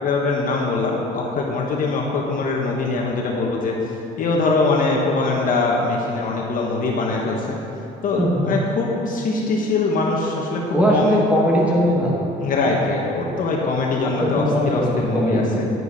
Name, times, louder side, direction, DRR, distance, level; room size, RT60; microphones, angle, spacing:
voice 1, 0.0-3.8 4.2-7.6 8.0-10.6 10.9-11.2 12.4-15.6, left 3 dB, 55° left, -1 dB, 1.4 m, -22 dB
voice 2, 10.7-12.2 14.2-15.7, equal, 10° right, -4 dB, 2.4 m, -19 dB
9.8 x 9.7 x 4.3 m, 2.7 s
cardioid pair, 110°, 17 cm